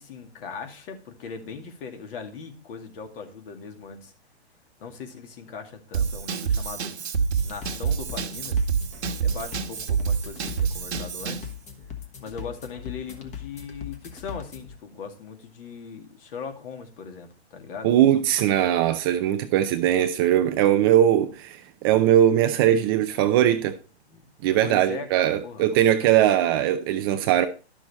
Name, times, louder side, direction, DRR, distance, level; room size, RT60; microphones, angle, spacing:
voice 1, 0.0-4.1 4.8-6.9 7.4-8.6 9.2-11.5 12.2-17.9 24.1-24.3 24.6-25.8, left 5 dB, 55° left, 2.2 m, -39 dB
Drum kit / Drum, 5.9-11.5, right 7 dB, 75° right, 1.3 m, -27 dB
sound 1, 7.1-14.8, left 8 dB, 20° left, 1.3 m, -40 dB
voice 2, 17.8-23.7 24.4-27.5, right 11 dB, 20° right, 0.4 m, -20 dB
11.5 x 6.2 x 4.2 m
hypercardioid pair, 135°, 33 cm